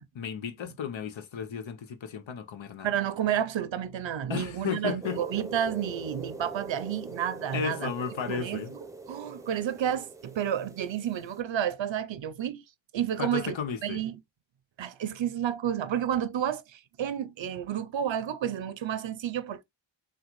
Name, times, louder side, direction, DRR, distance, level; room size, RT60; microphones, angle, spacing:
voice 1, 0.2-2.9 4.3-5.2 7.5-8.7 13.2-14.0, left 7 dB, 85° left, 0.7 m, -34 dB
voice 2, 2.8-7.9 8.3-12.6 12.9-13.6 13.8-14.2 14.8-19.6, right 10 dB, 80° right, 0.6 m, -31 dB
sound 1, 5.0-11.4, right 3 dB, 5° right, 0.5 m, -43 dB
3.6 x 2.3 x 2.9 m
wide cardioid pair, 80°, 45 cm